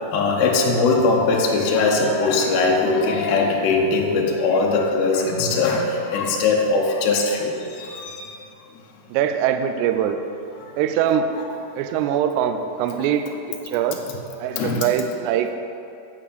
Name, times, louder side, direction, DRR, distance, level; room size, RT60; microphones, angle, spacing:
voice 1, 0.1-8.4 14.5-14.8, left 3 dB, 75° left, -1 dB, 2.9 m, -20 dB
voice 2, 9.1-10.2 10.8-11.3 11.8-13.3 13.7-14.0 14.4-15.5, right 9 dB, 90° right, 7 dB, 2.4 m, -22 dB
9.0 x 5.4 x 7.9 m, 2.6 s
omnidirectional pair, 5.4 m